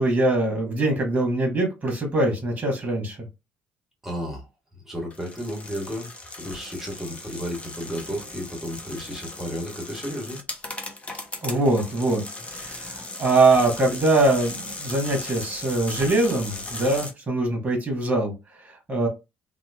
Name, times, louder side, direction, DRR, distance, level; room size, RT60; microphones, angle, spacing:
voice 1, 0.0-3.3 11.4-12.2 12.5-19.1, right 2 dB, 25° right, 1.4 m, -23 dB
voice 2, 4.0-4.4 4.8-6.1 6.4-10.4, equal, 5° right, 1.5 m, -33 dB
sound 1, 5.1-17.1, left 2 dB, 20° left, 0.8 m, -37 dB
2.9 x 2.4 x 2.3 m
figure-of-eight pair, 50°, 6 cm